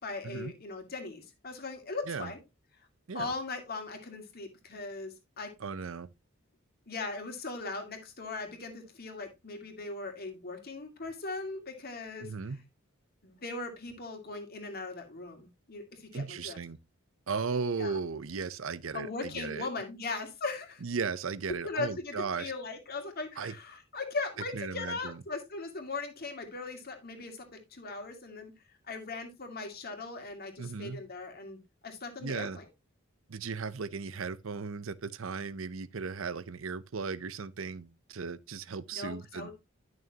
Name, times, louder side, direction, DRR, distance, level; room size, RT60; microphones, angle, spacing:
voice 1, 0.0-2.4 3.1-5.5 6.9-12.3 13.2-16.6 17.8-18.0 18.9-20.8 21.6-27.4 27.7-28.5 28.9-32.7 38.9-39.5, left 3 dB, 50° left, 2.2 m, -39 dB
voice 2, 5.6-6.1 12.2-12.6 16.1-16.8 17.3-19.7 20.8-22.5 23.4-23.5 24.5-25.2 30.6-31.0 32.2-32.6 33.3-39.5, right 5 dB, 75° right, 0.7 m, -36 dB
11.0 x 6.3 x 2.8 m
head